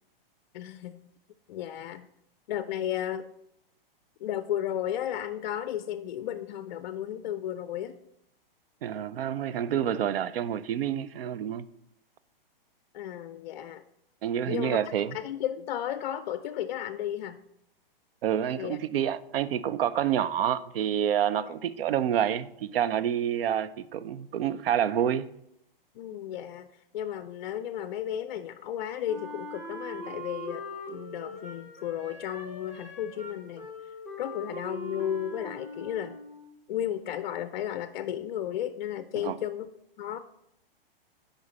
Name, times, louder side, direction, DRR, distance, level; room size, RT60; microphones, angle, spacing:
voice 1, 0.5-1.0 1.5-2.1 2.5-3.3 4.2-8.0 12.9-13.8 14.5-14.8 15.1-17.4 18.5-18.8 21.4-21.5 26.0-26.7 26.9-33.7 34.2-36.2 36.7-39.7 40.0-40.2, left 11 dB, 55° left, 0.4 m, -34 dB
voice 2, 8.8-11.7 14.2-15.2 18.2-25.3 39.2-39.4, right 9 dB, 75° right, 0.5 m, -28 dB
Wind instrument woodwind instrument, 29.0-36.6, equal, 10° right, 1.0 m, -42 dB
7.4 x 5.1 x 4.0 m
hypercardioid pair, 140°, 29 cm